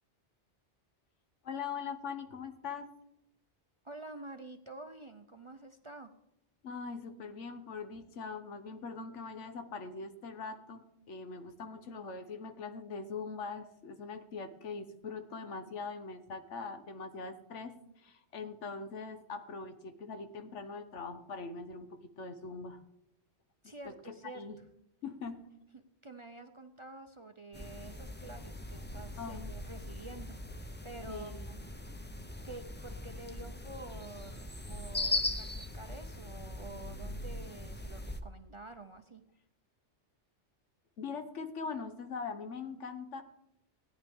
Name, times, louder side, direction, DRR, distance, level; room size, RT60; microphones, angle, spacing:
voice 1, 1.4-2.9 6.6-22.8 23.8-24.6 25.0-25.5 29.2-29.5 31.1-31.6 41.0-43.2, left 4 dB, 80° left, 8 dB, 1.3 m, -42 dB
voice 2, 3.8-6.1 23.6-24.5 25.7-31.5 32.4-35.5 35.7-39.2, right 2 dB, 35° right, 7 dB, 0.5 m, -49 dB
sound 1, 27.5-38.2, left 2 dB, 15° left, 0.4 m, -40 dB
17.0 x 10.0 x 3.6 m, 0.85 s
omnidirectional pair, 1.2 m